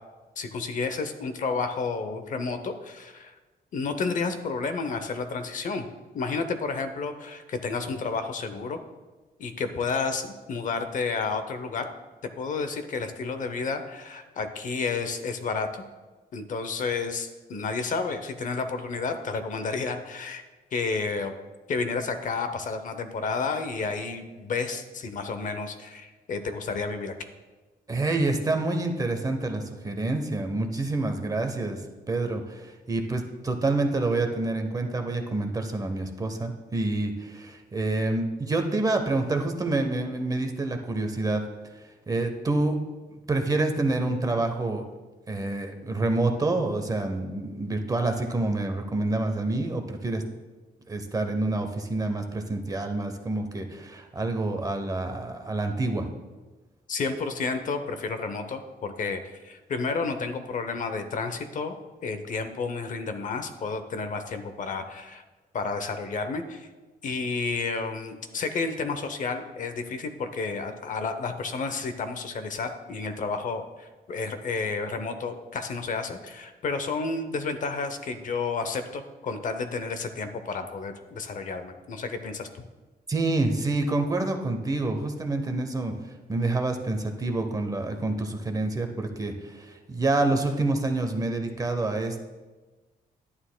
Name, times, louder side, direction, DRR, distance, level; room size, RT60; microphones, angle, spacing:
voice 1, 0.4-3.3 3.7-5.9 6.1-8.8 9.4-11.9 12.2-15.8 16.3-20.4 20.7-21.3 21.7-27.1 56.9-61.7 62.0-65.2 65.5-66.7 67.0-82.6, left 4 dB, 50° left, 8 dB, 0.7 m, -31 dB
voice 2, 27.9-31.8 32.1-41.4 42.1-42.8 43.1-44.8 45.3-50.2 50.9-56.1 83.1-85.9 86.3-92.2, right 2 dB, 20° right, 5 dB, 0.7 m, -27 dB
11.0 x 9.5 x 2.2 m, 1.3 s
cardioid pair, 140°, 17 cm